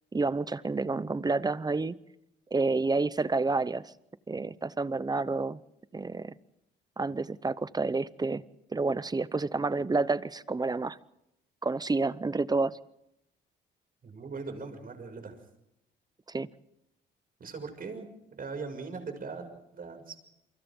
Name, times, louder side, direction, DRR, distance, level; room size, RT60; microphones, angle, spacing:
voice 1, 0.1-2.0 2.5-3.9 4.3-5.6 5.9-6.3 7.0-8.4 8.7-11.0 11.6-12.8 16.3-16.5, right 3 dB, 20° right, 17 dB, 0.8 m, -29 dB
voice 2, 14.0-15.4 17.4-20.2, right 4 dB, 45° right, 6 dB, 6.4 m, -40 dB
29.5 x 24.0 x 3.8 m, 0.83 s
cardioid pair, 90°, 20 cm